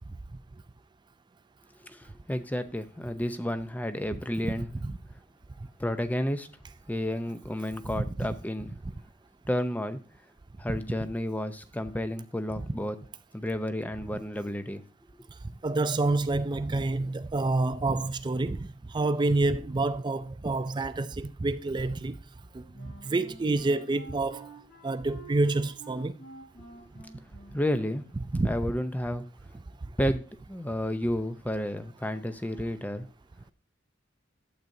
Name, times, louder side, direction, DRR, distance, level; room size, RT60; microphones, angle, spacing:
voice 1, 1.9-4.8 5.8-6.5 6.9-8.7 9.5-10.0 10.6-13.0 13.3-14.8 26.8-26.9 27.5-28.1 28.4-29.2 30.0-33.1, left 1 dB, 10° left, 0.7 m, -31 dB
voice 2, 15.6-18.7 18.9-22.1 22.5-22.6 23.1-24.5 24.8-26.1 28.3-28.5, right 2 dB, 25° right, 0.4 m, -27 dB
Wind instrument woodwind instrument, 22.4-28.3, right 2 dB, 65° left, 5.4 m, -50 dB
12.0 x 7.8 x 2.7 m
head